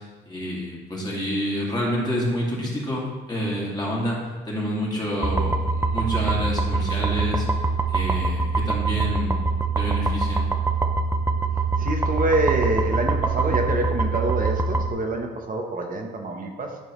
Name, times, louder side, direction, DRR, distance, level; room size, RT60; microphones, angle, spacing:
voice 1, 0.3-4.2 4.5-7.5 7.9-9.5 9.8-10.5, equal, 20° left, -5 dB, 2.2 m, -28 dB
sound 1, 5.2-14.9, right 3 dB, 10° right, 0.5 m, -24 dB
voice 2, 11.8-16.8, right 2 dB, 45° right, 2 dB, 0.9 m, -26 dB
9.7 x 4.6 x 3.1 m, 1.3 s
cardioid pair, 90°, 20 cm